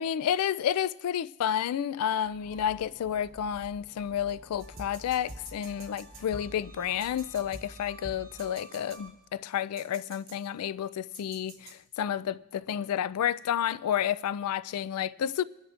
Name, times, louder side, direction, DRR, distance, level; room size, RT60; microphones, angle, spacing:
voice 1, 0.0-15.4, left 9 dB, 90° left, 0.3 m, -30 dB
Train, 2.1-7.8, equal, 15° right, 5.7 m, -53 dB
sound 1, 4.6-9.4 9.8-10.3 11.1-11.7, right 2 dB, 40° right, 3.0 m, -47 dB
28.0 x 11.0 x 2.5 m
head